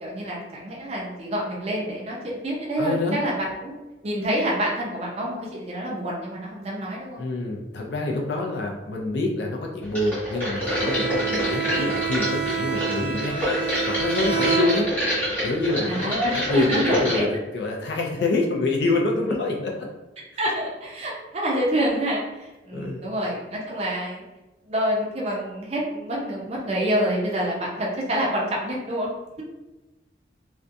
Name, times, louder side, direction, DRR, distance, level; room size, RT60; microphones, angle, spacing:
voice 1, 0.0-3.7 4.0-7.2 11.3-11.4 15.9-17.3 20.4-24.2 24.7-29.1, right 1 dB, 35° right, -3 dB, 0.5 m, -27 dB
voice 2, 2.8-3.2 7.2-13.5 13.9-14.9 15.4-19.9 20.2-20.5 22.7-23.0, left 2 dB, 65° left, 0 dB, 0.4 m, -26 dB
sound 1, 9.9-17.2, equal, 10° left, 1.0 m, -27 dB
Bowed string instrument, 10.6-15.2, right 6 dB, 30° left, 0.9 m, -28 dB
2.5 x 2.2 x 2.5 m, 1.1 s
head